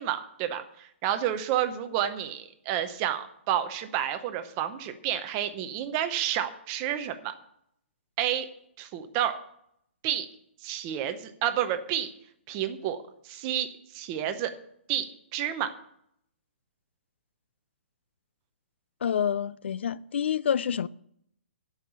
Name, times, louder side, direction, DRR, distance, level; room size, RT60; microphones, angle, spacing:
voice 1, 0.0-7.3 8.2-8.4 8.8-9.4 10.0-10.3 10.6-12.1 12.5-13.0 13.2-13.7 13.9-14.5 14.9-15.0 15.3-15.7, right 11 dB, 20° right, 0.7 m, -30 dB
voice 2, 19.0-20.9, left 8 dB, 60° left, 0.4 m, -27 dB
11.5 x 5.6 x 8.1 m
hypercardioid pair, 170°, 7 cm